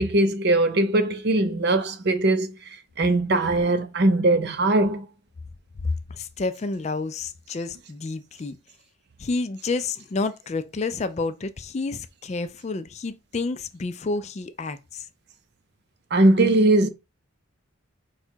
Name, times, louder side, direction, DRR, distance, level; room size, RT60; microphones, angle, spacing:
voice 1, 0.0-2.5 3.0-5.1 16.1-16.9, right 2 dB, 50° right, 0.6 m, -20 dB
voice 2, 6.1-8.6 9.2-15.1, left 3 dB, 30° left, 0.3 m, -30 dB
4.8 x 2.3 x 4.4 m
head